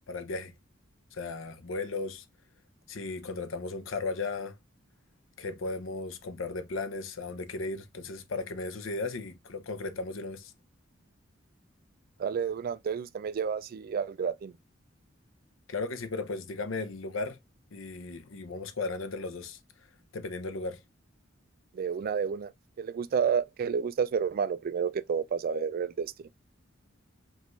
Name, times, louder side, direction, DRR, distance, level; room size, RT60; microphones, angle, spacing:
voice 1, 0.1-0.5 1.1-2.2 2.9-4.6 5.4-10.5 15.7-17.4 17.7-19.6 20.1-20.8, left 3 dB, 85° left, 0.7 m, -36 dB
voice 2, 12.2-14.5 21.7-22.5 22.8-26.3, right 6 dB, 50° right, 0.3 m, -30 dB
5.4 x 2.5 x 3.1 m
head